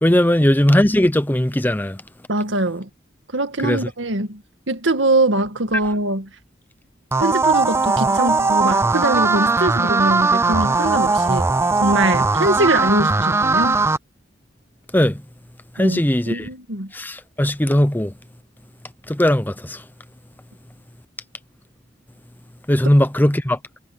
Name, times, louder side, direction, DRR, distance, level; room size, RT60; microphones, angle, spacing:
voice 1, 0.0-2.0 3.6-3.8 14.9-15.2 15.8-16.5 16.9-18.1 19.1-19.8 22.7-23.6, left 1 dB, 10° left, 0.8 m, -18 dB
voice 2, 2.3-2.9 3.3-6.3 7.2-11.5 11.8-13.9 15.8-16.0 16.3-16.9, right 2 dB, 75° right, 2.0 m, -22 dB
sound 1, 7.1-14.0, right 3 dB, 15° right, 0.4 m, -19 dB
head